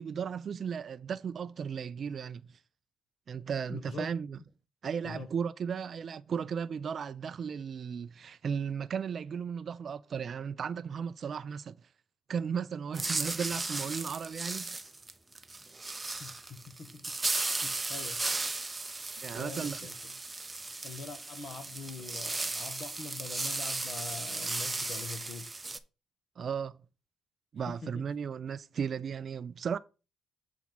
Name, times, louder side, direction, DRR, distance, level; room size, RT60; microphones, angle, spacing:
voice 1, 0.0-2.6 3.3-4.4 4.8-11.8 12.3-14.8 19.2-19.9 26.4-26.8 27.5-29.8, right 7 dB, 50° right, 0.3 m, -35 dB
voice 2, 3.7-4.1 5.0-5.3 16.2-17.0 17.3-18.2 19.4-20.1 20.8-25.5 27.7-28.3, left 4 dB, 60° left, 1.3 m, -44 dB
burger flip, 12.9-25.8, right 2 dB, 20° right, 0.7 m, -36 dB
7.1 x 3.6 x 6.0 m
cardioid pair, 90°, 0 cm